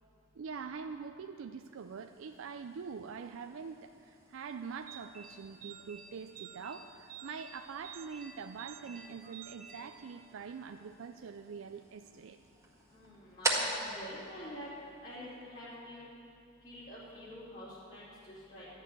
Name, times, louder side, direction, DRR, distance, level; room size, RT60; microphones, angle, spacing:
voice 1, 0.4-12.4, right 5 dB, 70° right, 7 dB, 0.4 m, -44 dB
sound 1, 1.7-15.4, right 2 dB, 15° right, 1.7 m, -43 dB
sound 2, 4.9-10.6, right 7 dB, 40° right, 1.0 m, -52 dB
voice 2, 12.9-14.7 15.0-16.1 16.6-18.7, equal, 45° left, -11 dB, 3.2 m, -47 dB
13.0 x 6.4 x 9.4 m, 2.8 s
head